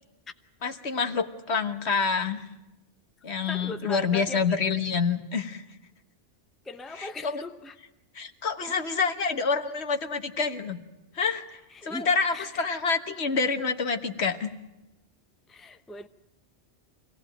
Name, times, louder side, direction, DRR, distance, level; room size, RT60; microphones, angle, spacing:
voice 1, 0.6-2.5 3.2-5.6 7.0-7.4 8.1-10.8 11.1-14.5, left 5 dB, 65° left, 8 dB, 1.6 m, -27 dB
voice 2, 3.5-4.4 6.6-7.8 8.7-8.8 11.7-12.6 15.5-16.1, left 2 dB, ahead, 8 dB, 0.7 m, -39 dB
25.0 x 17.5 x 9.0 m, 0.98 s
omnidirectional pair, 1.2 m